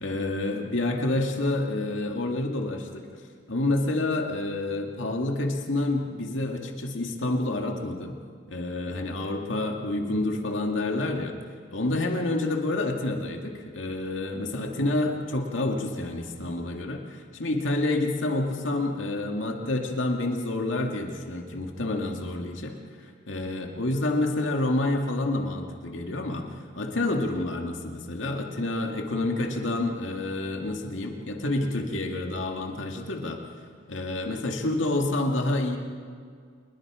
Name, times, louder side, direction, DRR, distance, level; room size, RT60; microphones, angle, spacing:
voice 1, 0.0-3.1 3.5-8.1 8.5-11.4 11.7-22.8 23.3-26.5 26.8-33.4 33.9-35.8, left 2 dB, 90° left, 2 dB, 2.1 m, -28 dB
28.5 x 21.5 x 5.0 m, 2.1 s
head